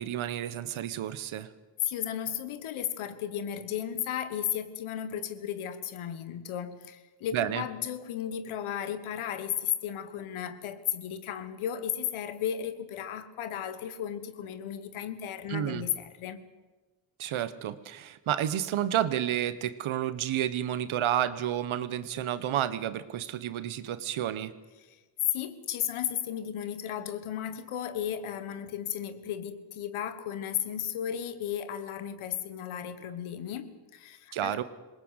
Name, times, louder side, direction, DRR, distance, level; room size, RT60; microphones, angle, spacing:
voice 1, 0.0-1.5 7.3-7.6 15.5-15.9 17.2-24.5 34.3-34.6, right 11 dB, 75° right, 1.2 m, -30 dB
voice 2, 1.8-16.4 24.8-25.0 25.3-34.6, left 10 dB, 85° left, 1.5 m, -34 dB
21.0 x 18.0 x 8.1 m
supercardioid pair, 55°, 48 cm